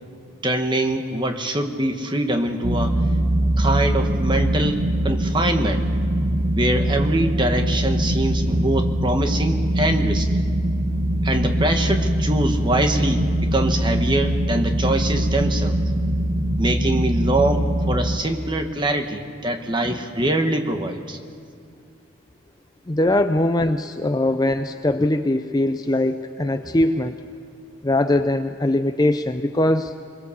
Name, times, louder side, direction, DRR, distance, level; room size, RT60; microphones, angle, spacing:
voice 1, 0.4-3.1 3.6-5.9 6.5-10.4 11.2-15.9 16.6-21.2, right 1 dB, 20° right, 5 dB, 1.2 m, -23 dB
sound 1, 2.6-18.2, right 1 dB, 45° right, 1.3 m, -22 dB
voice 2, 22.9-27.2 27.8-29.9, left 1 dB, 20° left, 8 dB, 0.4 m, -21 dB
22.5 x 22.0 x 7.1 m, 2.3 s
head